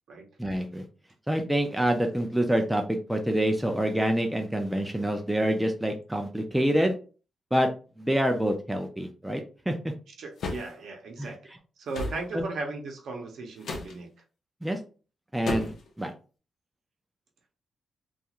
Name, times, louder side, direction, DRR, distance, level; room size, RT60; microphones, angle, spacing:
voice 1, 0.4-0.8 1.3-6.9 7.5-7.7 8.0-9.8 11.2-11.3 12.3-12.4 14.6-14.8 15.3-16.1, equal, 5° right, 3 dB, 0.3 m, -26 dB
voice 2, 10.2-11.4 11.8-14.1, right 3 dB, 65° right, 2 dB, 0.7 m, -36 dB
sound 1, 10.4-10.7 11.9-12.2 13.6-13.9 15.5-15.9, left 2 dB, 60° left, 0.5 m, -32 dB
2.4 x 2.3 x 2.8 m, 0.36 s
wide cardioid pair, 175°, 0 cm